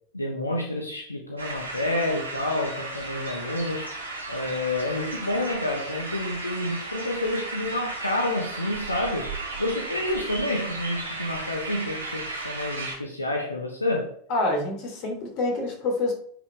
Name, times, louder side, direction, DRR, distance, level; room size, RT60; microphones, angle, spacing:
voice 1, 0.1-3.9 4.3-9.3 9.6-14.1, left 1 dB, 90° left, 2 dB, 1.0 m, -29 dB
sound 1, 1.4-13.0, right 2 dB, 85° right, 2.6 m, -35 dB
voice 2, 14.3-16.1, left 2 dB, 45° left, 2 dB, 3.1 m, -26 dB
9.6 x 5.0 x 3.4 m, 0.62 s
figure-of-eight pair, 85°, 0 cm